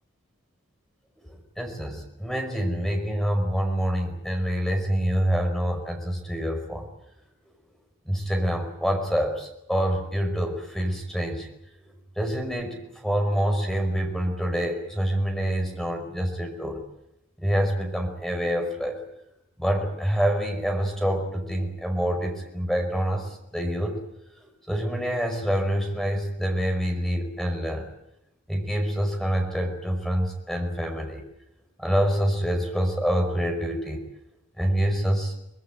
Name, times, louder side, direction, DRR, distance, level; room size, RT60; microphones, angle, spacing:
voice 1, 1.2-6.9 8.1-11.5 12.2-16.8 17.4-19.0 19.6-24.0 24.4-27.9 28.5-31.2 31.8-34.0 34.6-35.3, equal, ahead, 3 dB, 5.3 m, -26 dB
24.0 x 20.5 x 9.0 m, 0.83 s
head